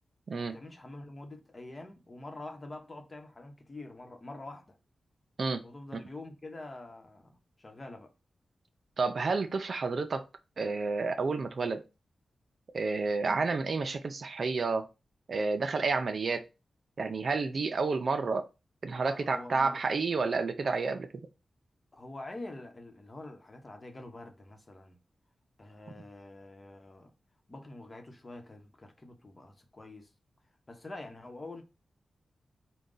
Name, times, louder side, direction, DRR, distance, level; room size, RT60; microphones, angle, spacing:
voice 1, 0.3-4.8 5.6-8.1 18.9-19.8 21.9-25.0 25.6-27.1 27.5-30.1 30.7-31.6, left 2 dB, 35° left, 0.9 m, -46 dB
voice 2, 9.0-10.2 10.6-11.8 12.7-14.9 15.3-16.5 17.0-18.5 18.8-21.1, right 4 dB, 65° right, 0.5 m, -30 dB
3.8 x 2.3 x 3.8 m
cardioid pair, 55°, 0 cm